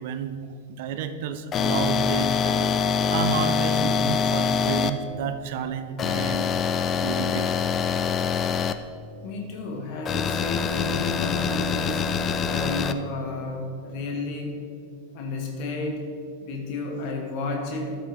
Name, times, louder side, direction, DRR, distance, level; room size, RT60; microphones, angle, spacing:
voice 1, 0.0-2.7 3.1-6.5 7.0-7.5, right 7 dB, 50° right, 10 dB, 0.6 m, -31 dB
sound 1, 1.5-4.9 6.0-8.7 10.1-12.9, left 6 dB, 25° left, 0.4 m, -24 dB
voice 2, 9.2-12.1 12.4-14.6 15.1-16.1 16.4-18.0, left 2 dB, 45° left, 2 dB, 1.6 m, -32 dB
12.5 x 6.1 x 3.6 m, 2.2 s
figure-of-eight pair, 90°, 0 cm